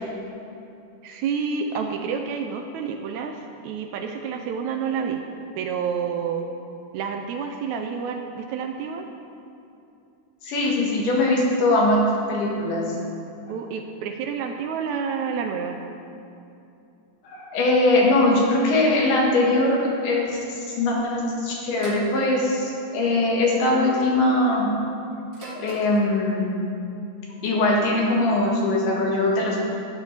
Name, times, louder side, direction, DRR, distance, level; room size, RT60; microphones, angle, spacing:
voice 1, 1.0-5.2 5.6-6.5 6.9-9.1 13.5-15.8, right 6 dB, 80° right, 4 dB, 1.7 m, -29 dB
voice 2, 10.4-12.0 12.3-12.8 17.2-24.7 25.6-26.5 27.4-29.6, left 2 dB, 90° left, -3 dB, 3.1 m, -21 dB
sound 1, 21.8-22.2 23.3-23.7 25.3-26.0, equal, 35° right, 0.9 m, -37 dB
12.0 x 9.7 x 3.3 m, 2.7 s
omnidirectional pair, 3.6 m